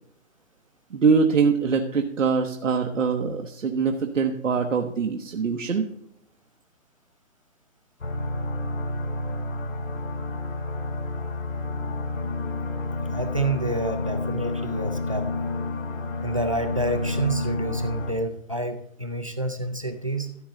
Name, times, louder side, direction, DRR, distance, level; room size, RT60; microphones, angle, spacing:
voice 1, 0.9-5.8, right 5 dB, 65° right, 3 dB, 1.2 m, -23 dB
sound 1, 8.0-18.1, left 2 dB, 70° left, 2.0 m, -29 dB
voice 2, 13.1-15.3 16.2-20.4, right 2 dB, 25° right, 7 dB, 0.6 m, -28 dB
14.0 x 7.7 x 3.9 m, 0.69 s
hypercardioid pair, 180°, 41 cm